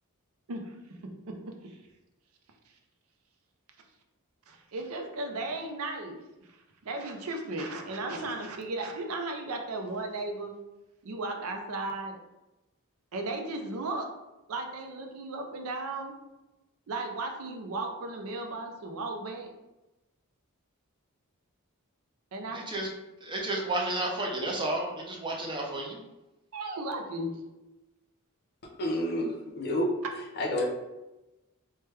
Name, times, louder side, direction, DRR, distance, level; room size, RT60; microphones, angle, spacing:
voice 1, 1.3-1.8 4.5-6.2 6.8-10.5 11.0-12.2 13.1-14.1 14.5-16.1 16.9-19.5 22.3-22.7 26.5-27.3, right 2 dB, 70° right, 3 dB, 0.5 m, -35 dB
voice 2, 22.5-22.9 23.2-26.1, right 2 dB, 20° right, -1 dB, 0.5 m, -32 dB
voice 3, 28.8-29.9 30.4-30.7, left 1 dB, 50° left, 2 dB, 0.5 m, -29 dB
3.1 x 2.2 x 3.1 m, 1.0 s
head